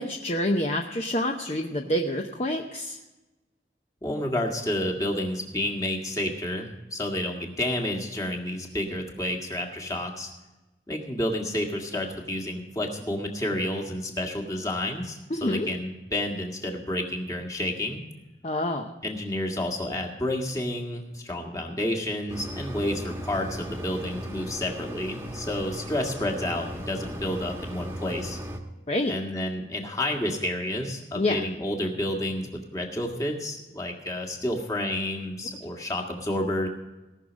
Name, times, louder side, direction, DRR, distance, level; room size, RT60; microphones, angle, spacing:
voice 1, 0.0-3.0 15.3-15.7 18.4-18.9 28.9-29.1 31.1-31.4, left 1 dB, 35° left, 3 dB, 0.7 m, -27 dB
voice 2, 4.0-10.3 10.9-18.0 19.0-28.4 29.1-36.7, left 1 dB, 20° left, 2 dB, 1.7 m, -30 dB
Mechanisms, 22.3-28.6, equal, 15° right, 1.2 m, -37 dB
18.0 x 6.4 x 6.2 m, 1.1 s
head